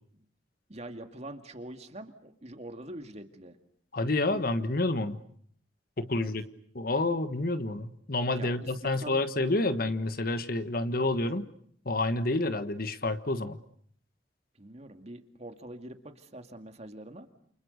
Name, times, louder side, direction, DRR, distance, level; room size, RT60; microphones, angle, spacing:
voice 1, 0.7-3.6 6.1-6.3 8.4-8.5 8.8-9.2 14.6-17.3, right 1 dB, 35° right, 7 dB, 2.2 m, -44 dB
voice 2, 3.9-5.2 6.0-6.4 6.7-11.5 11.8-13.6, left 2 dB, 55° left, 11 dB, 1.4 m, -29 dB
29.0 x 29.0 x 6.6 m, 0.64 s
head